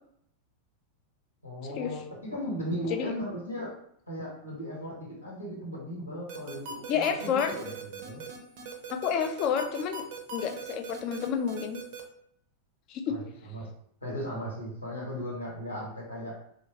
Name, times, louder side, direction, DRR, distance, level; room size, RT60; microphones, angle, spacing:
voice 1, 1.4-3.7 4.1-8.2 13.1-13.7 14.0-16.4, equal, 85° left, -3 dB, 0.9 m, -37 dB
sound 1, 6.3-12.0, right 3 dB, 50° right, 0.5 m, -40 dB
voice 2, 6.9-7.5 8.9-11.8 12.9-13.2, left 7 dB, 40° left, 6 dB, 0.4 m, -30 dB
3.0 x 2.4 x 2.9 m, 0.70 s
figure-of-eight pair, 90°, 0 cm